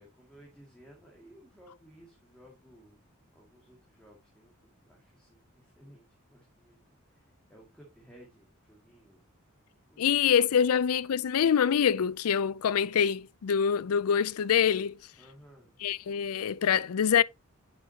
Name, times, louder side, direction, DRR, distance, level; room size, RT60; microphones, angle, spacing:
voice 1, 0.0-3.0 3.3-9.2 9.9-10.1 10.6-10.7 15.2-15.7, equal, 5° left, 2.1 m, -57 dB
voice 2, 10.0-15.0 15.8-17.2, left 8 dB, 85° left, 0.4 m, -25 dB
10.0 x 6.1 x 2.8 m
head